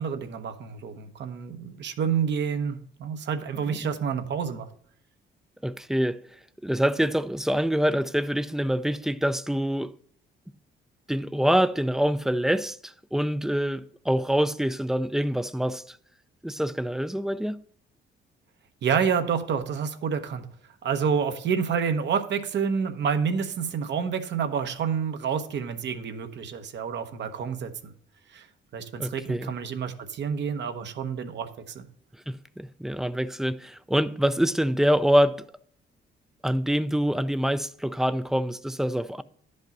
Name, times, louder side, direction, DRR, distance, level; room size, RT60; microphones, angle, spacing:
voice 1, 0.0-4.7 18.8-20.5 20.8-27.9 28.3-28.4 28.7-31.9, right 7 dB, 65° right, 1.0 m, -28 dB
voice 2, 5.6-6.2 6.6-9.9 11.1-16.0 16.4-17.6 29.0-29.5 32.3-35.4 36.4-39.2, equal, ahead, 0.4 m, -25 dB
10.5 x 5.4 x 4.0 m
cardioid pair, 90°, 20 cm